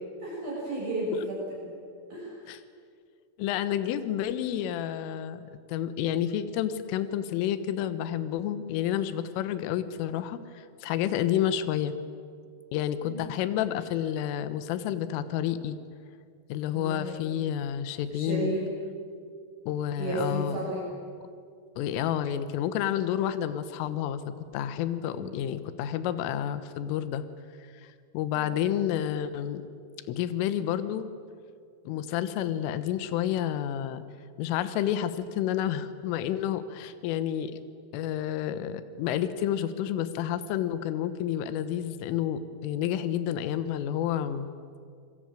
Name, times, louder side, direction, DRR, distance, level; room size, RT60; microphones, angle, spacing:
voice 1, 0.2-1.4 1.6-1.7 2.1-2.4 13.0-13.2 16.7-17.2 18.1-18.7 20.0-20.8 25.2-25.4 28.3-28.5, right 2 dB, 45° right, -5 dB, 9.1 m, -33 dB
voice 2, 3.4-5.4 5.7-11.9 12.7-15.8 16.5-18.6 19.7-20.7 21.8-24.2 24.5-27.2 28.1-29.6 30.1-31.1 31.9-34.0 34.4-37.6 37.9-44.5, left 10 dB, 80° left, 12 dB, 3.7 m, -30 dB
27.5 x 22.0 x 9.1 m, 2.2 s
omnidirectional pair, 5.8 m